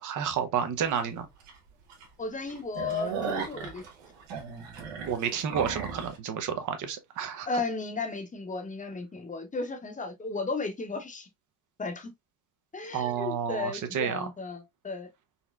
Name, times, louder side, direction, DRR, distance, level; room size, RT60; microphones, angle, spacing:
voice 1, 0.0-1.3 5.1-7.5 12.9-14.3, right 8 dB, 45° right, 0.8 m, -30 dB
sound 1, 0.9-1.0 1.5-1.6 1.9-2.0 2.4-6.2, right 6 dB, 75° right, 1.2 m, -36 dB
voice 2, 2.2-3.8 7.5-11.3 11.8-12.1 12.7-15.1, left 3 dB, 20° left, 0.9 m, -34 dB
4.1 x 2.1 x 2.3 m
supercardioid pair, 90°, 43 cm